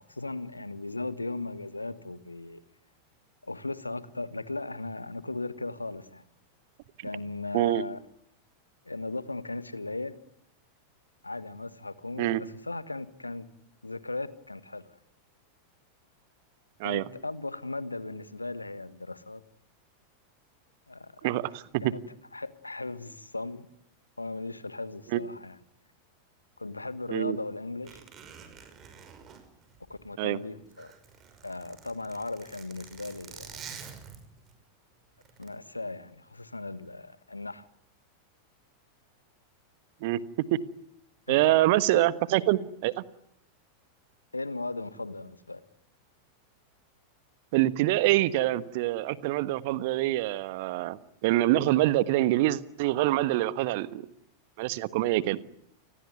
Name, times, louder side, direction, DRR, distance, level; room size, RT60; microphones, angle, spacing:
voice 1, 0.0-2.6 3.4-6.2 7.0-8.0 8.8-10.1 11.2-13.5 13.8-14.9 16.8-19.4 20.9-21.1 21.8-22.0 22.3-23.7 24.2-25.6 26.6-28.0 29.9-30.9 31.4-33.6 35.4-37.7 41.3-41.6 41.9-42.0 44.3-45.6, left 2 dB, 80° left, 1.5 m, -37 dB
voice 2, 21.2-21.9 25.1-25.2 27.1-27.4 30.2-30.4 40.0-40.2 40.5-40.6 41.3-43.0 47.5-54.1 54.6-55.4, right 16 dB, 50° right, 1.3 m, -25 dB
Zipper (clothing), 27.8-30.3 30.6-34.5 35.2-35.5, right 7 dB, 30° right, 5.8 m, -47 dB
29.0 x 20.5 x 9.4 m
figure-of-eight pair, 90°, 0 cm